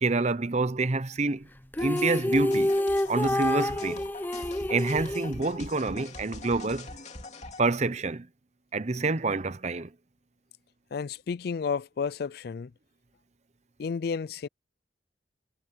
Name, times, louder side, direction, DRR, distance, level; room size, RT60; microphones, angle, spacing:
voice 1, 0.0-1.5 1.8-2.7 3.1-4.1 4.7-6.9 7.6-8.3 8.7-9.9, right 3 dB, 40° right, 0.8 m, -27 dB
sound 1, 1.7-6.0, left 1 dB, 10° left, 0.6 m, -28 dB
sound 2, 1.8-7.6, left 2 dB, 40° left, 2.9 m, -43 dB
voice 2, 10.9-12.7 13.8-14.5, left 5 dB, 55° left, 0.4 m, -31 dB
head